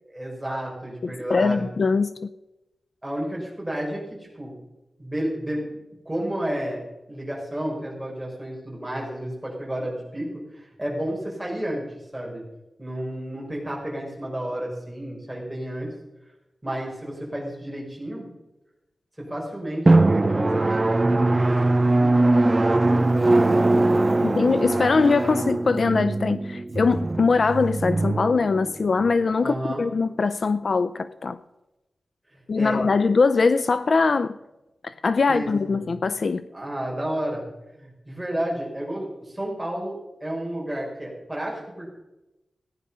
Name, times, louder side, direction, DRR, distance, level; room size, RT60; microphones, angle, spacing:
voice 1, 0.1-1.6 3.0-4.0 4.4-4.5 5.0-5.8 6.1-6.8 7.1-10.3 10.5-11.8 12.1-12.4 12.8-15.9 16.6-18.3 19.2-22.3 22.9-23.6 29.4-29.8 32.3-32.8 35.3-35.9 36.5-37.4 37.7-39.9 40.2-41.9, right 1 dB, 10° right, 5.2 m, -31 dB
voice 2, 1.0-2.3 24.2-31.4 32.5-34.4 34.8-36.4, left 4 dB, 55° left, 0.4 m, -22 dB
Drum, 19.9-29.1, right 2 dB, 30° right, 0.5 m, -21 dB
15.5 x 10.0 x 5.5 m
wide cardioid pair, 115°, 0 cm